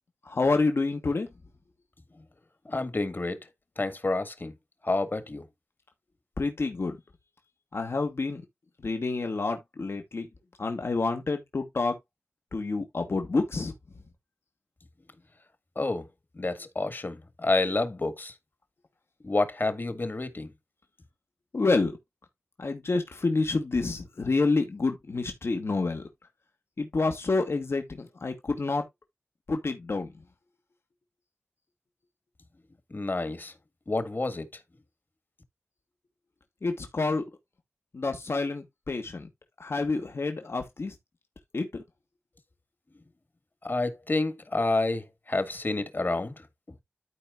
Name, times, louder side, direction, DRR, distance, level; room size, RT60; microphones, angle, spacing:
voice 1, 0.3-1.3 6.4-7.0 7.7-8.4 8.8-10.3 10.6-12.0 12.5-13.7 21.5-22.0 22.6-26.0 26.8-28.8 29.5-30.1 36.6-37.2 37.9-39.3 39.6-40.9 41.5-41.8, left 3 dB, 75° left, 1.7 m, -28 dB
voice 2, 2.7-3.4 3.8-4.5 4.8-5.5 15.8-16.1 16.4-18.3 19.2-20.5 32.9-33.5 33.9-34.5 43.6-46.5, left 2 dB, 50° left, 1.8 m, -29 dB
13.5 x 4.5 x 2.4 m
cardioid pair, 45°, 4 cm